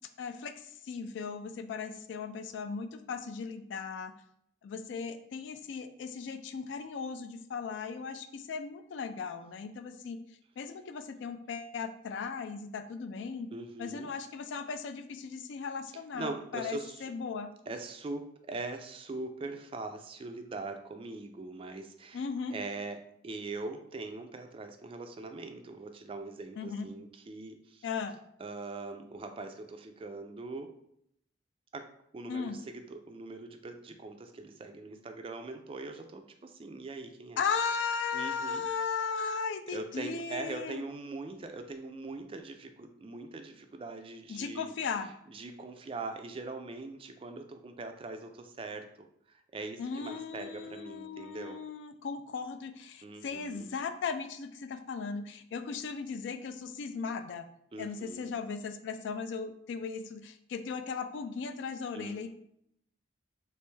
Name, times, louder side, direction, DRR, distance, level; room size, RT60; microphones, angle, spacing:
voice 1, 0.2-4.1 4.6-10.2 10.6-13.5 13.8-17.5 22.1-22.5 26.6-26.9 27.8-28.2 32.3-32.6 37.4-40.8 44.3-45.1 49.8-57.5 57.8-62.3, left 5 dB, 65° left, 9 dB, 0.3 m, -37 dB
voice 2, 13.5-14.1 16.1-17.1 17.7-22.2 22.5-27.9 28.4-30.7 31.7-37.4 38.1-38.6 39.7-44.7 45.3-51.6 53.0-53.7 57.7-58.3 61.9-62.3, right 3 dB, 30° right, 6 dB, 0.3 m, -42 dB
3.3 x 3.0 x 3.1 m, 0.72 s
head